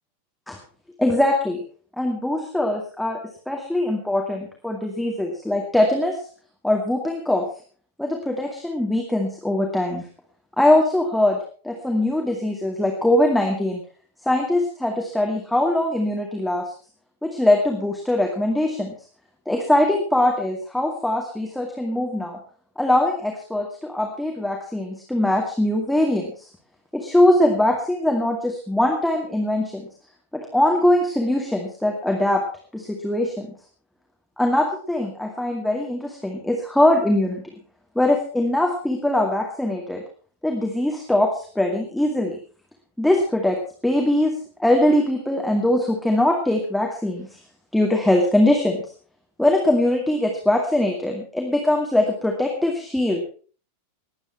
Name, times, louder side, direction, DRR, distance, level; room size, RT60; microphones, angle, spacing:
voice 1, 1.0-1.6 2.0-3.2 3.5-6.2 6.6-7.4 8.0-10.1 10.6-11.4 11.6-13.8 14.2-16.6 17.2-18.9 19.5-22.4 22.8-26.5 26.9-29.9 30.3-32.4 32.7-33.5 34.4-37.4 38.0-40.0 40.4-42.4 43.0-44.3 44.6-47.3 47.7-48.8 49.4-53.2, left 1 dB, 5° left, 0 dB, 2.2 m, -21 dB
20.5 x 8.8 x 4.6 m, 0.42 s
figure-of-eight pair, 90°, 0 cm